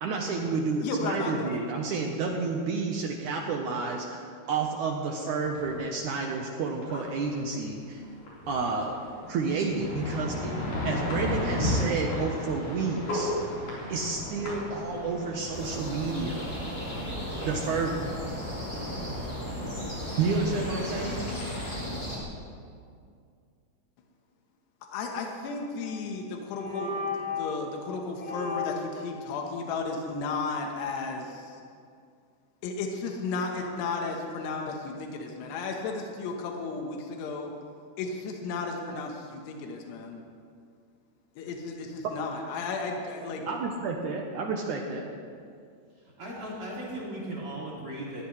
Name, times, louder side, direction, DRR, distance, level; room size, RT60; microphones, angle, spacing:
voice 1, 0.0-8.0 8.5-9.0 9.3-10.5 10.9-13.3 13.9-16.5 17.4-18.2 20.2-21.3 43.5-45.1, right 4 dB, 75° right, 1 dB, 1.9 m, -30 dB
voice 2, 0.8-1.5 24.9-31.6 32.6-37.5 38.0-40.2 41.4-43.5, left 4 dB, 80° left, 2 dB, 3.3 m, -34 dB
sound 1, 5.3-5.7 6.4-6.5 6.8-7.0 7.3-7.5 8.0-21.7, left 1 dB, 50° left, 5.5 m, -35 dB
sound 2, 15.5-22.2, equal, 10° left, 4.1 m, -35 dB
sound 3, 25.8-26.1 26.5-27.6 28.2-29.0, left 4 dB, 25° left, 2.7 m, -34 dB
voice 3, 46.2-48.2, right 1 dB, 35° right, -6 dB, 3.5 m, -37 dB
21.0 x 16.0 x 3.2 m, 2.3 s
omnidirectional pair, 4.8 m